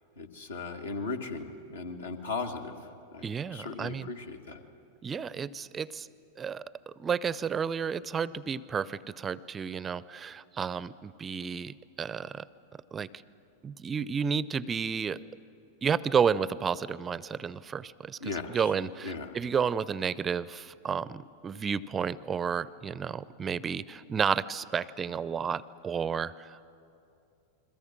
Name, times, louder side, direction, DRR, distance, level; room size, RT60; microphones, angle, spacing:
voice 1, 0.2-4.6 18.2-18.7 19.0-19.4, left 4 dB, 70° left, 3 dB, 1.9 m, -37 dB
voice 2, 3.2-4.1 5.0-6.1 6.4-12.5 12.9-13.1 13.6-15.2 15.8-26.6, right 6 dB, 20° right, 20 dB, 0.6 m, -31 dB
29.0 x 22.0 x 7.4 m, 2.6 s
figure-of-eight pair, 90°, 0 cm